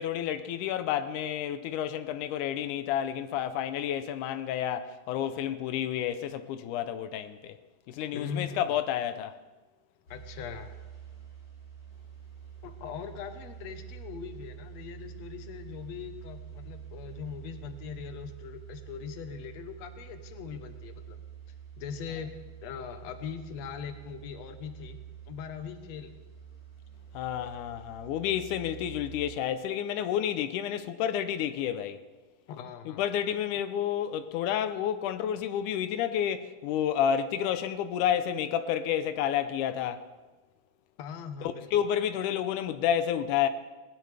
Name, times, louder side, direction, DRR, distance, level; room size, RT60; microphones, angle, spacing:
voice 1, 0.0-7.6 7.9-9.4 27.1-32.0 32.9-40.0 41.4-43.5, left 10 dB, 90° left, 2.2 m, -30 dB
voice 2, 8.1-8.8 10.1-10.7 12.6-21.2 21.8-22.3 22.6-25.0 25.3-26.1 32.5-33.0 41.0-41.8, left 7 dB, 65° left, 2.2 m, -41 dB
sound 1, 10.1-29.3, right 9 dB, 35° left, 4.5 m, -47 dB
20.0 x 19.0 x 3.4 m
omnidirectional pair, 3.5 m